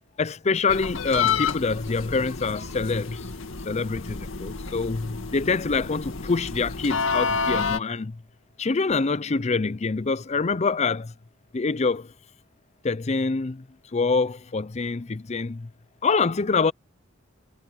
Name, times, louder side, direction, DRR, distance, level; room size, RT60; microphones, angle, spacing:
voice 1, 0.2-3.3 3.7-8.2 8.6-11.1 11.5-12.1 12.8-13.6 13.9-15.7 16.0-16.7, left 4 dB, 35° left, 0.5 m, -25 dB
sound 1, 0.7-7.8, left 5 dB, 90° left, 2.0 m, -29 dB
head